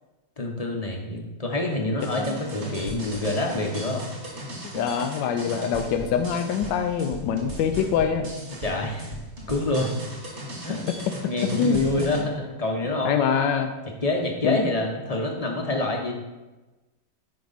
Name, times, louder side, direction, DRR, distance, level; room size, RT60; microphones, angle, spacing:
voice 1, 0.4-4.1 8.6-9.1 9.5-9.9 10.6-10.8 11.3-13.1 14.0-16.1, left 2 dB, 30° left, 0 dB, 0.7 m, -27 dB
sound 1, 2.0-12.2, right 1 dB, 40° right, 1.9 m, -37 dB
voice 2, 4.7-8.3 10.9-11.0 11.5-12.1 13.0-13.7 14.4-14.6, left 7 dB, 85° left, 6 dB, 1.3 m, -24 dB
10.5 x 4.8 x 4.0 m, 1.1 s
omnidirectional pair, 1.9 m